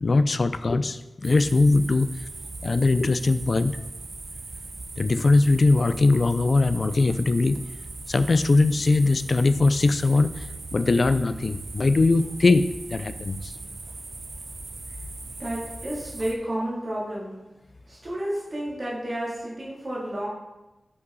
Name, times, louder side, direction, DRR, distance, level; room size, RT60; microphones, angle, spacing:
voice 1, 0.0-2.1 2.6-3.8 5.0-7.6 8.1-10.5 10.7-13.5, left 3 dB, 55° left, 13 dB, 0.3 m, -21 dB
sound 1, 1.2-16.3, right 3 dB, 55° right, 0.7 m, -39 dB
voice 2, 15.4-17.3 17.9-20.3, right 1 dB, 40° right, -7 dB, 2.8 m, -31 dB
8.2 x 5.4 x 3.9 m, 1.0 s
wide cardioid pair, 110°, 0 cm